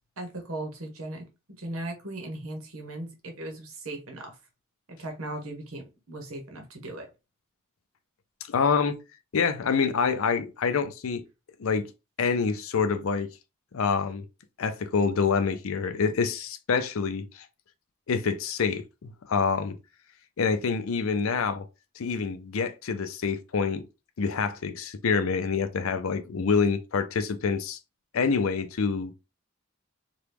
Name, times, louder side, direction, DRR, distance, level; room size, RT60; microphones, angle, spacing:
voice 1, 0.2-1.2 1.6-4.4 4.9-7.1, right 2 dB, 90° right, 1.1 m, -38 dB
voice 2, 8.5-9.0 9.3-11.2 11.6-11.9 12.2-13.3 13.7-14.2 14.6-17.5 18.1-19.8 20.4-21.7 22.0-23.8 24.2-27.8 28.1-29.1, left 5 dB, 75° left, 0.5 m, -26 dB
3.0 x 2.3 x 3.4 m
head